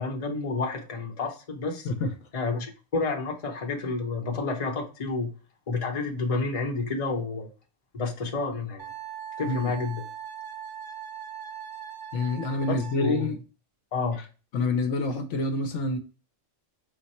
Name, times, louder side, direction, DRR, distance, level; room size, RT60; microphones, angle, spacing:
voice 1, 0.0-1.9 2.3-5.3 5.7-7.5 7.9-8.9 9.4-10.0 13.0-13.3 13.9-14.2, left 3 dB, 30° left, 1 dB, 0.8 m, -30 dB
Wind instrument woodwind instrument, 8.8-13.3, right 9 dB, 60° right, 1.2 m, -40 dB
voice 2, 12.1-13.4 14.5-16.0, left 3 dB, 70° left, 5 dB, 0.9 m, -27 dB
5.1 x 2.0 x 4.1 m, 0.34 s
omnidirectional pair, 1.4 m